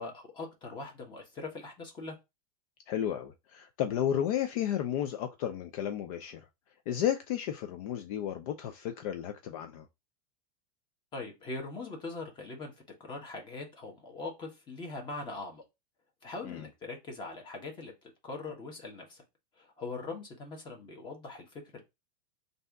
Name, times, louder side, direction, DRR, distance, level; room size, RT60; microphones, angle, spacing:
voice 1, 0.0-2.2 11.1-12.7 13.0-15.6 16.2-17.9 18.2-19.2 19.6-21.8, left 3 dB, 25° left, 1.4 m, -41 dB
voice 2, 2.9-6.4 6.9-9.9 16.4-16.7, left 10 dB, 60° left, 0.6 m, -33 dB
3.3 x 2.7 x 4.6 m
supercardioid pair, 145°, 20 cm